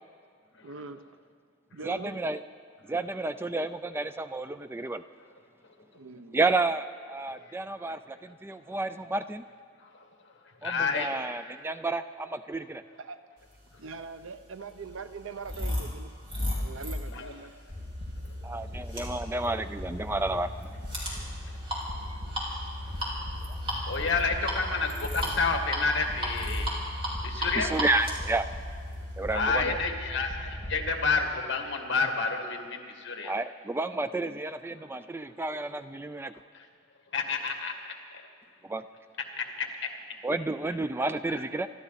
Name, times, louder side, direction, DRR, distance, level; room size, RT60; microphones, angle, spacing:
voice 1, 0.6-1.0 1.7-2.2 5.9-6.4 13.0-13.2 13.8-16.1 16.6-17.5 17.8-18.2 22.1-22.3 29.6-30.0, right 4 dB, 90° right, 11 dB, 0.7 m, -42 dB
voice 2, 1.8-2.4 2.9-5.0 6.3-9.4 10.6-12.8 18.4-20.5 24.4-24.6 26.7-27.0 27.5-28.5 29.2-29.8 33.2-36.3 38.6-38.8 40.2-41.7, right 2 dB, 10° right, 11 dB, 0.3 m, -31 dB
voice 3, 7.3-7.6 9.8-11.2 13.7-13.8 17.1-17.3 18.2-18.6 21.1-21.6 23.9-26.7 27.2-27.7 29.3-33.3 35.0-35.1 36.5-36.7 37.1-38.3 39.2-39.9 40.7-40.8 41.3-41.4, left 4 dB, 65° left, 4 dB, 1.8 m, -30 dB
sound 1, 13.8-29.5, equal, 30° right, 3.8 m, -36 dB
sound 2, 17.7-31.2, left 1 dB, 45° right, 3.1 m, -38 dB
26.0 x 12.0 x 4.1 m, 2.2 s
head